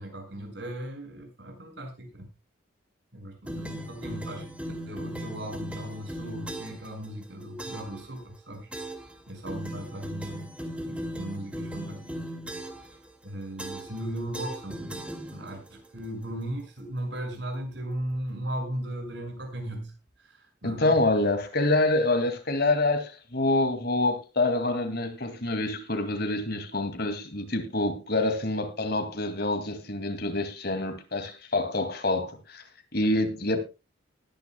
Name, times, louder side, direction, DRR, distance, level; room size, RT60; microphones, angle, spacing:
voice 1, 0.0-2.3 3.1-4.5 4.9-12.4 12.6-21.0, right 1 dB, 60° right, 5.9 m, -37 dB
sound 1, 3.5-6.9 7.6-8.0 8.7-9.1 9.5-12.9 13.6-14.0 14.3-15.7, right 1 dB, 5° right, 2.2 m, -38 dB
voice 2, 20.6-32.6 32.9-33.6, left 2 dB, 50° left, 2.4 m, -26 dB
20.5 x 10.5 x 2.3 m
head